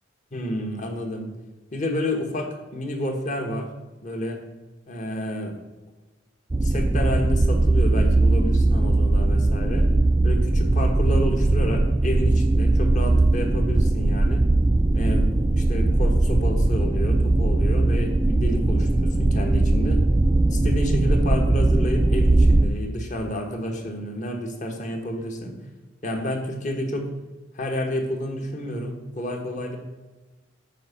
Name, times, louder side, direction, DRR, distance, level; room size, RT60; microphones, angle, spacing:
voice 1, 0.3-1.3 1.7-3.7 4.0-4.4 4.9-5.6 6.6-9.9 10.2-14.4 14.9-20.0 20.5-25.6 26.0-27.0 27.5-29.8, equal, 40° left, 3 dB, 1.4 m, -30 dB
sound 1, 6.5-22.7, right 2 dB, 15° right, 0.3 m, -20 dB
9.1 x 5.0 x 5.9 m, 1.2 s
head